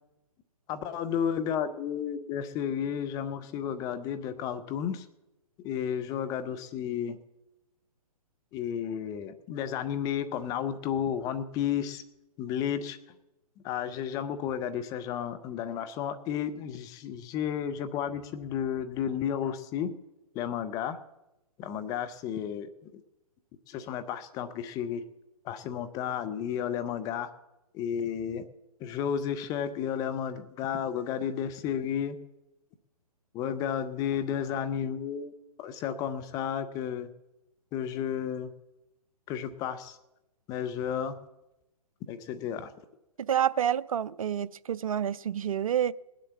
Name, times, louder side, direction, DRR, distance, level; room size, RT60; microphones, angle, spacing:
voice 1, 0.7-5.1 5.6-7.2 8.5-12.0 12.4-13.0 13.6-19.9 20.3-21.0 21.6-23.0 23.7-25.0 25.4-27.3 27.7-28.5 28.8-32.2 33.3-35.3 35.6-37.1 37.7-38.5 39.3-40.0 40.5-41.1 42.1-42.7, left 8 dB, 20° left, 0.6 m, -32 dB
voice 2, 43.2-45.9, right 9 dB, 60° right, 0.6 m, -28 dB
20.0 x 7.6 x 7.1 m
figure-of-eight pair, 130°, 20 cm